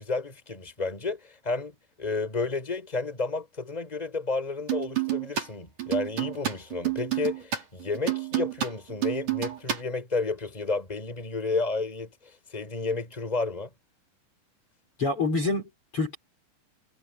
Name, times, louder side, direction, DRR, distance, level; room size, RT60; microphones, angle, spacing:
voice 1, 0.0-13.7, left 3 dB, 10° left, 5.0 m, -31 dB
sound 1, 4.7-5.5 5.8-9.8, right 13 dB, 45° right, 5.4 m, -29 dB
voice 2, 15.0-16.2, left 3 dB, 30° left, 4.9 m, -27 dB
omnidirectional pair, 5.4 m